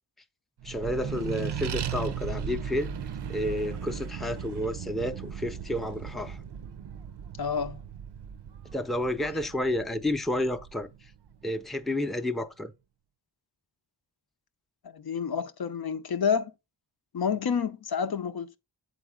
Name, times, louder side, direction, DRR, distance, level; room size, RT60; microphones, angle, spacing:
voice 1, 0.6-2.9 3.3-6.4 8.7-11.1 11.4-12.7, left 1 dB, ahead, 0.5 m, -30 dB
Accelerating revving vroom, 0.6-11.5, right 7 dB, 75° right, 0.6 m, -37 dB
voice 2, 7.4-7.8 14.9-16.5 17.1-18.6, left 6 dB, 60° left, 0.6 m, -29 dB
8.0 x 4.0 x 3.6 m
wide cardioid pair, 75°, 42 cm